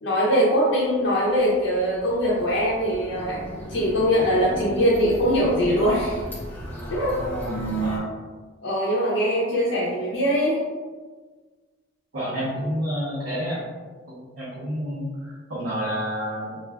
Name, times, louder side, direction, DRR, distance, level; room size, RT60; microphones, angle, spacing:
voice 1, 0.0-3.4 3.7-6.2 6.9-7.1 8.6-10.6, equal, 65° left, -6 dB, 0.5 m, -22 dB
sound 1, 1.5-8.0, right 1 dB, 10° left, 0.6 m, -33 dB
voice 2, 12.1-13.6 14.1-16.6, equal, 70° right, -10 dB, 0.8 m, -29 dB
2.3 x 2.2 x 3.4 m, 1.4 s
head